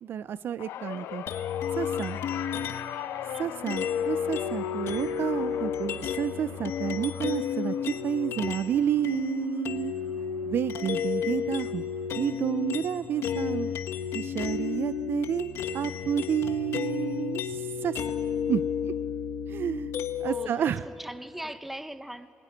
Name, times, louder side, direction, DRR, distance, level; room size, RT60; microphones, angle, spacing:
voice 1, 0.0-1.2 1.7-2.2 3.4-9.9 10.4-11.8 12.2-13.7 14.1-18.0 18.5-18.9 19.5-19.9 20.2-20.8, right 9 dB, 55° right, 15 dB, 0.5 m, -30 dB
sound 1, 0.6-11.0 11.4-11.8 12.9-13.0, left 10 dB, 90° left, 0.9 m, -41 dB
sound 2, 1.3-3.0 3.7-8.7 9.0-20.5, left 7 dB, 65° left, 1.1 m, -32 dB
voice 2, 20.2-22.3, right 1 dB, 5° right, 12 dB, 0.8 m, -40 dB
23.0 x 20.0 x 9.7 m, 2.8 s
cardioid pair, 140°, 4 cm